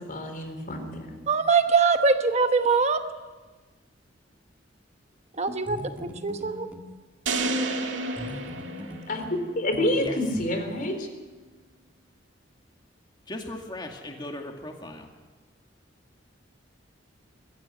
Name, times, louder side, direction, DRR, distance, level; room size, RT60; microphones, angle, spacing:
voice 1, 0.0-1.2 9.1-11.1, left 1 dB, 50° left, 6 dB, 3.9 m, -28 dB
voice 2, 1.3-3.0 5.4-5.8 6.2-6.7, right 4 dB, 35° right, 7 dB, 1.1 m, -22 dB
sound 1, 5.5-6.9 8.2-10.5, equal, 10° right, 1.9 m, -41 dB
sound 2, 7.3-9.5, right 2 dB, 75° right, 2.1 m, -30 dB
voice 3, 13.3-15.1, left 1 dB, 25° left, 2 dB, 2.1 m, -37 dB
22.5 x 15.0 x 9.6 m, 1.3 s
head